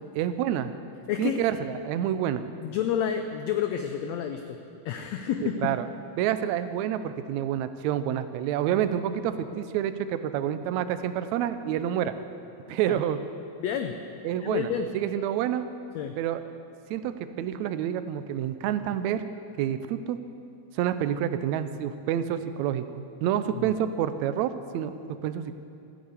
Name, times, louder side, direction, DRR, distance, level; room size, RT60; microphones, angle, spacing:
voice 1, 0.1-0.7 1.2-2.4 5.4-5.9 6.2-12.1 12.7-13.2 14.2-14.7 14.9-15.7 16.2-16.4 16.9-19.2 19.6-20.2 20.7-25.5, right 10 dB, 75° right, 11 dB, 1.7 m, -28 dB
voice 2, 1.1-1.4 2.6-4.6 4.8-5.7 12.9-13.0 13.6-13.9 14.4-14.9 15.9-16.2 23.5-23.7, left 8 dB, 80° left, 6 dB, 1.6 m, -29 dB
14.5 x 9.5 x 8.3 m, 2.5 s
omnidirectional pair, 3.8 m